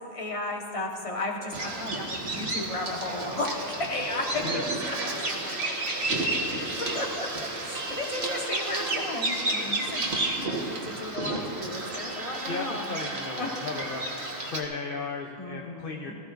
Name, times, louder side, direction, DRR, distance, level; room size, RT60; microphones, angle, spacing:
voice 1, 0.0-4.6 4.9-13.0 13.4-13.5 15.4-16.1, left 2 dB, 25° left, 0 dB, 1.3 m, -35 dB
Bird vocalization bird call bird song, 1.5-14.6, right 2 dB, 55° right, 1.7 m, -31 dB
voice 2, 12.4-14.0 14.4-16.1, left 4 dB, 50° left, 3 dB, 0.8 m, -35 dB
18.5 x 14.5 x 2.6 m, 2.8 s
omnidirectional pair, 1.3 m